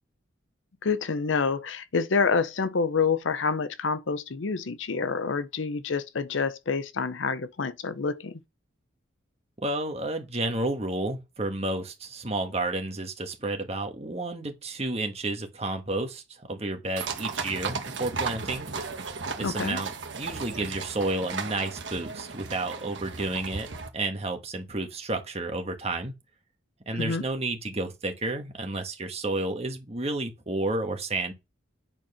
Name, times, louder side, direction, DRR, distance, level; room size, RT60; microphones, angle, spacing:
voice 1, 0.8-8.4 19.4-19.8 26.9-27.2, left 5 dB, 75° left, 0.7 m, -27 dB
voice 2, 9.6-18.7 19.4-23.7 23.9-26.1 26.9-31.3, right 2 dB, 30° right, 1.6 m, -31 dB
sound 1, 17.0-23.9, right 4 dB, 65° right, 1.3 m, -35 dB
9.1 x 4.4 x 5.6 m
head